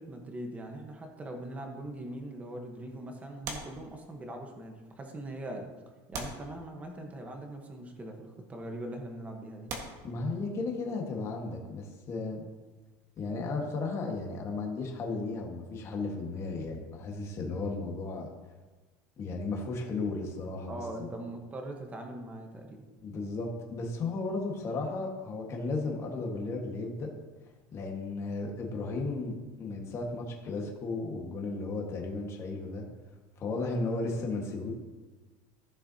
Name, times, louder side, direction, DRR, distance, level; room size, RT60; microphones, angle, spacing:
voice 1, 0.0-5.7 6.1-9.7 20.7-22.8, right 1 dB, 15° right, 3 dB, 1.1 m, -41 dB
sound 1, 3.4-4.5 5.3-5.4 6.1-7.2 8.2-8.4 9.0-9.1 9.7-10.9 12.8-14.6 14.8-15.0, right 3 dB, 40° right, 1.5 m, -43 dB
voice 2, 10.0-12.4 13.2-18.3 19.2-21.1 23.0-27.1 27.7-32.8 33.4-34.7, left 3 dB, 30° left, 0 dB, 1.6 m, -34 dB
15.0 x 6.8 x 2.8 m, 1.3 s
cardioid pair, 160°, 10 cm